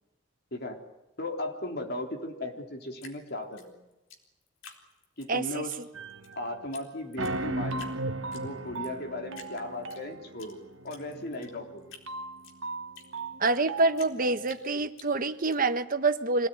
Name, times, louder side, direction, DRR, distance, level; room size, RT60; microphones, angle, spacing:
voice 1, 1.2-3.8 5.2-5.7 6.4-7.9 8.3-10.6 10.8-12.0, left 1 dB, 55° left, 3 dB, 3.8 m, -37 dB
Drip, 3.0-5.3 5.7-6.3 6.7-6.8 7.1-8.0 8.3-8.9 9.3-10.5 10.9-13.6 14.0-15.6, left 5 dB, 75° left, 4.1 m, -50 dB
voice 2, 5.3-5.6 13.4-16.5, right 3 dB, 45° right, 10 dB, 1.3 m, -26 dB
sound 1, 5.9-6.7 7.2-14.6, right 2 dB, 80° right, 1.2 m, -37 dB
26.0 x 17.5 x 9.4 m, 0.99 s
head